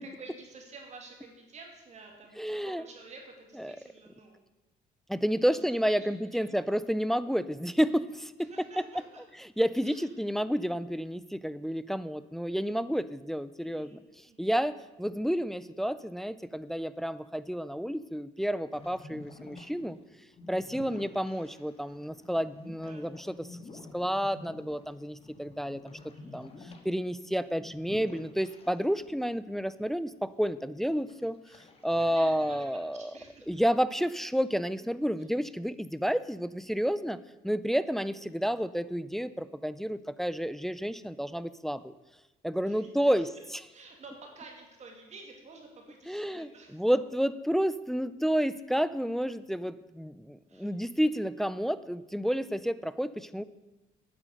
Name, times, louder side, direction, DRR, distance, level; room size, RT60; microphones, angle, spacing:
voice 1, 0.0-4.4 5.4-6.6 8.4-9.2 9.8-10.1 13.6-14.6 20.7-21.0 22.8-23.1 26.1-26.8 32.0-32.7 32.9-33.6 35.2-35.3 42.6-43.3 43.7-46.8 50.5-50.8, right 3 dB, 40° right, 1 dB, 2.4 m, -51 dB
voice 2, 2.4-2.8 3.6-3.7 5.1-8.5 9.6-14.0 14.4-20.0 20.5-23.5 23.9-26.0 26.3-26.5 26.8-31.4 31.8-33.1 33.5-37.2 37.4-41.9 42.4-43.3 46.1-53.4, equal, ahead, 15 dB, 0.4 m, -30 dB
sound 1, 18.7-29.1 29.4-29.5 30.1-30.6 31.1-32.9, left 3 dB, 35° left, 1.6 m, -50 dB
9.2 x 7.7 x 6.5 m, 1.0 s
cardioid pair, 110°, 17 cm